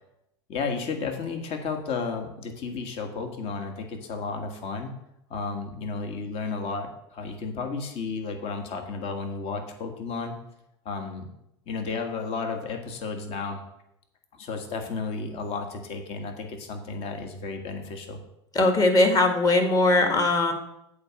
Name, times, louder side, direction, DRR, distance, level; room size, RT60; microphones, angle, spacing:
voice 1, 0.5-4.9 5.3-10.3 10.9-11.3 11.7-13.6 14.3-18.2, left 4 dB, 45° left, 4 dB, 1.6 m, -33 dB
voice 2, 18.6-20.5, left 2 dB, 25° left, 5 dB, 1.8 m, -20 dB
8.4 x 5.0 x 7.5 m, 0.82 s
hypercardioid pair, 95°, 14 cm